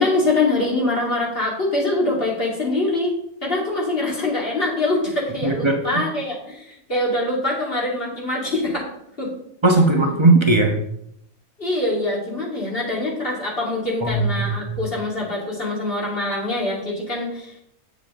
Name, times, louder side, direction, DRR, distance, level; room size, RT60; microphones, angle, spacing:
voice 1, 0.0-8.9 9.2-9.3 11.6-17.5, left 2 dB, 40° left, -3 dB, 2.7 m, -24 dB
voice 2, 5.4-6.0 9.6-10.8 14.0-14.8, right 2 dB, 20° right, 2 dB, 1.1 m, -18 dB
8.8 x 7.4 x 3.7 m, 0.74 s
omnidirectional pair, 1.5 m